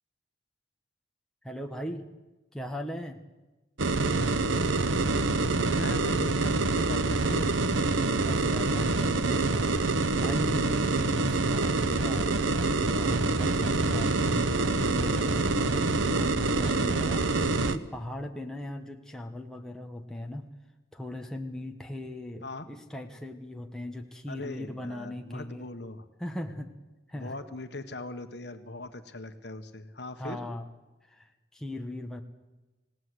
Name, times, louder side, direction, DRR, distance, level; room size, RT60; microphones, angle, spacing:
voice 1, 1.4-2.0 2.5-3.2 8.2-9.8 10.2-20.5 20.9-25.7 26.2-26.7 27.1-27.3 30.2-30.7 31.1-32.2, left 1 dB, 5° left, 2 dB, 1.4 m, -38 dB
sound 1, 3.8-17.8, right 3 dB, 85° right, 1.1 m, -26 dB
voice 2, 5.6-7.5 16.4-17.0 22.4-22.7 24.3-26.1 27.1-30.4, left 2 dB, 60° left, 8 dB, 1.5 m, -40 dB
28.0 x 17.5 x 8.0 m, 1.1 s
head